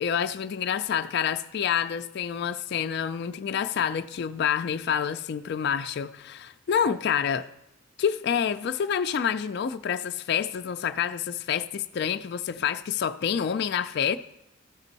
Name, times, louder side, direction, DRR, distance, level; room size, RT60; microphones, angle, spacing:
voice 1, 0.0-7.5 8.0-14.2, left 8 dB, 55° left, 0.3 m, -28 dB
14.0 x 5.3 x 4.0 m
head